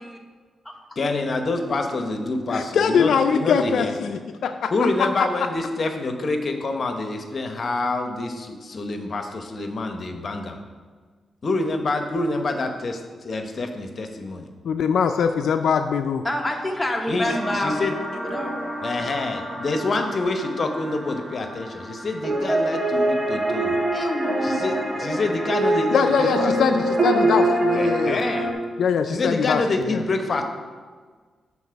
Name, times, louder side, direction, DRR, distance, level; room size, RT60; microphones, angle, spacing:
voice 1, 1.0-3.9 4.7-10.6 11.4-14.5 17.1-17.9 18.8-23.8 24.4-26.5 27.7-28.5 29.1-30.4, left 2 dB, 50° left, 5 dB, 0.8 m, -26 dB
voice 2, 2.5-4.7 14.6-16.2 25.9-28.2 28.8-29.6 29.9-30.0, left 6 dB, 80° left, 7 dB, 0.3 m, -22 dB
voice 3, 16.2-17.8 18.2-18.5 23.9-25.3, left 1 dB, 10° left, 1 dB, 1.1 m, -28 dB
sound 1, 17.2-28.5, right 1 dB, 40° right, 1.8 m, -25 dB
7.3 x 4.1 x 5.7 m, 1.5 s
cardioid pair, 85°, 0 cm